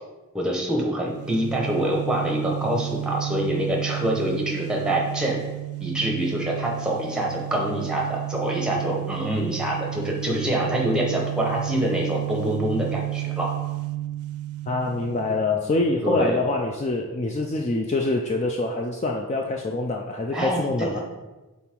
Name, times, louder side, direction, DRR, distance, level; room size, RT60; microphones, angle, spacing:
voice 1, 0.3-5.4 5.8-13.5 16.0-16.4 20.3-21.0, right 1 dB, 5° right, -2 dB, 1.0 m, -26 dB
sound 1, 1.0-15.5, right 17 dB, 85° right, 0.5 m, -32 dB
voice 2, 14.7-21.0, left 2 dB, 30° left, 1 dB, 0.4 m, -25 dB
5.5 x 4.1 x 4.5 m, 1.1 s
head